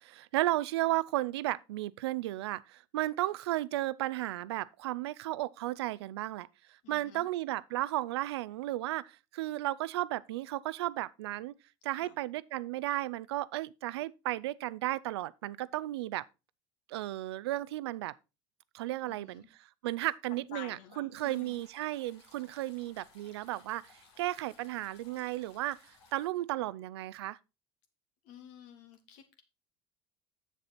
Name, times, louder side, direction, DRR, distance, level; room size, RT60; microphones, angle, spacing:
voice 1, 0.0-6.5 6.9-11.5 11.8-16.2 16.9-18.1 18.7-27.4, right 16 dB, 85° right, 0.4 m, -34 dB
voice 2, 6.8-7.3 11.9-12.2 19.1-19.5 20.3-21.6 28.2-29.4, left 8 dB, 70° left, 1.7 m, -51 dB
sound 1, 21.1-26.3, left 4 dB, 90° left, 2.1 m, -61 dB
7.4 x 6.9 x 4.0 m
hypercardioid pair, 80°, 13 cm